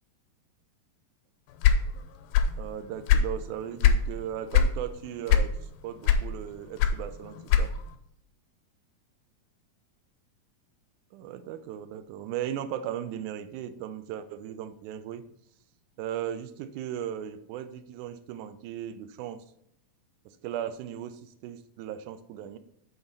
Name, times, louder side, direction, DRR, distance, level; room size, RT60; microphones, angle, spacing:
sound 1, 1.6-2.6 2.9-4.1 4.5-4.8 5.3-5.7 6.0-7.9, left 7 dB, 90° left, 2.4 m, -21 dB
voice 1, 2.6-7.7 11.1-15.2 16.0-19.4 20.3-22.6, right 10 dB, 80° right, 11 dB, 1.8 m, -37 dB
8.0 x 4.0 x 5.4 m, 0.74 s
omnidirectional pair, 4.0 m